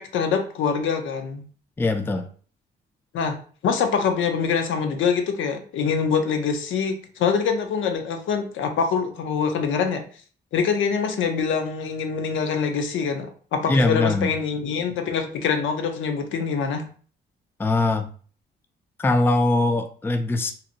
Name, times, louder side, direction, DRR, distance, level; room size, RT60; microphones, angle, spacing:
voice 1, 0.0-1.4 3.1-10.0 10.5-16.9, left 6 dB, 75° left, 6 dB, 0.5 m, -24 dB
voice 2, 1.8-2.3 13.7-14.3 17.6-18.1 19.0-20.5, left 2 dB, 10° left, 7 dB, 0.3 m, -21 dB
2.7 x 2.0 x 2.7 m, 0.43 s
cardioid pair, 80°, 20 cm